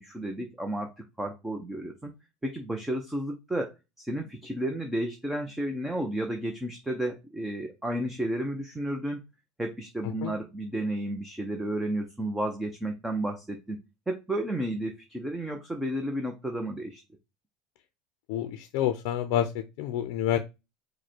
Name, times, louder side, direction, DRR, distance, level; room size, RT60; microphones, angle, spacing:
voice 1, 0.0-2.1 2.4-9.2 9.6-13.8 14.1-17.0, right 1 dB, 5° right, 3 dB, 0.6 m, -32 dB
voice 2, 18.3-20.4, left 11 dB, 65° left, 8 dB, 0.5 m, -28 dB
4.9 x 2.2 x 4.4 m, 0.25 s
supercardioid pair, 135°, 3 cm